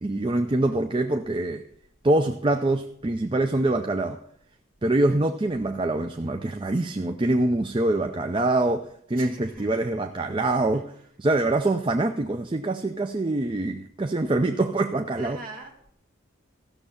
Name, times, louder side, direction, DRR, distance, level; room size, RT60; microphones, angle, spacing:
voice 1, 0.0-1.7 2.0-4.2 4.8-10.9 11.2-15.4, right 2 dB, 25° right, 6 dB, 0.5 m, -24 dB
voice 2, 9.2-9.8 10.7-10.8 15.2-15.9, right 2 dB, 40° right, 2 dB, 1.8 m, -42 dB
14.5 x 6.6 x 7.0 m, 0.67 s
head